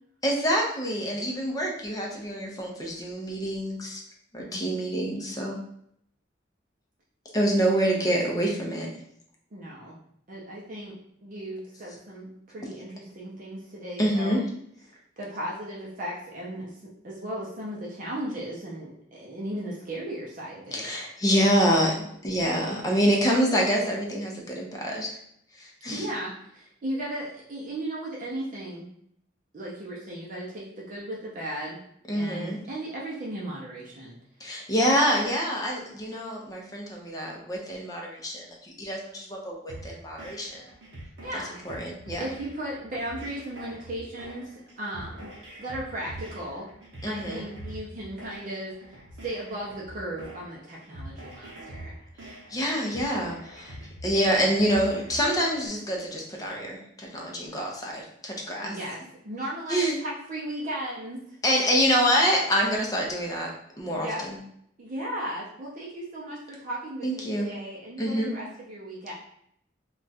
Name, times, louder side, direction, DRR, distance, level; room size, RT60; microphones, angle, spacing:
voice 1, 0.2-4.0 4.3-5.6 7.3-8.9 14.0-14.4 20.7-25.2 25.6-26.0 32.1-32.6 34.4-40.5 41.6-42.2 47.0-47.5 52.5-53.8 54.0-58.8 59.7-60.0 61.4-63.5 63.8-64.4 67.0-67.5 68.0-68.3, equal, 20° left, -1 dB, 0.6 m, -26 dB
voice 2, 4.4-4.8 7.8-8.0 9.5-9.9 10.3-11.0 11.2-14.4 14.9-20.9 25.9-28.9 29.5-31.8 32.1-34.2 34.4-34.6 41.2-41.6 42.2-45.3 45.6-46.7 47.1-48.7 49.2-51.9 58.6-59.0 59.2-61.4 63.9-64.2 64.8-69.1, right 1 dB, 45° right, -5 dB, 0.6 m, -36 dB
sound 1, 39.7-55.7, right 1 dB, 75° right, 0.8 m, -44 dB
2.3 x 2.3 x 4.0 m, 0.72 s
head